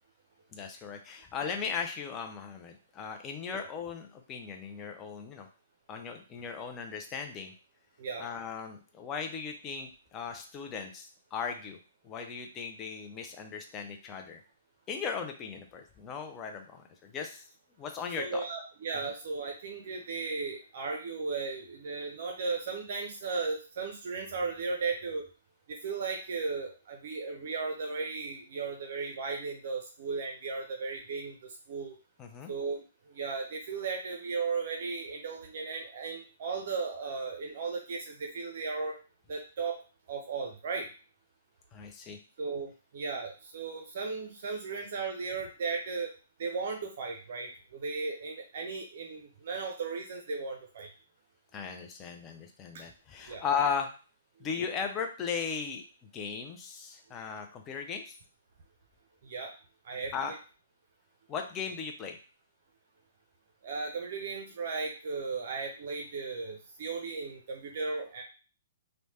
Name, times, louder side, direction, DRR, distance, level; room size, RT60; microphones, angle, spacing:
voice 1, 0.5-5.5 5.9-7.5 8.2-11.8 12.0-14.4 14.9-17.4 17.8-18.4 32.2-32.5 41.7-42.2 51.5-53.9 54.4-55.8 56.1-58.2 60.1-60.3 61.3-62.2, left 6 dB, 25° left, 4 dB, 0.4 m, -37 dB
voice 2, 18.2-25.3 25.7-32.0 32.5-32.8 33.1-39.0 39.3-39.8 40.1-40.9 42.4-46.1 46.4-50.9 52.7-52.8 53.3-53.4 59.2-59.5 59.8-60.4 63.6-68.2, right 4 dB, 55° right, 2 dB, 0.5 m, -36 dB
3.1 x 2.1 x 2.8 m, 0.35 s
hypercardioid pair, 130°, 0 cm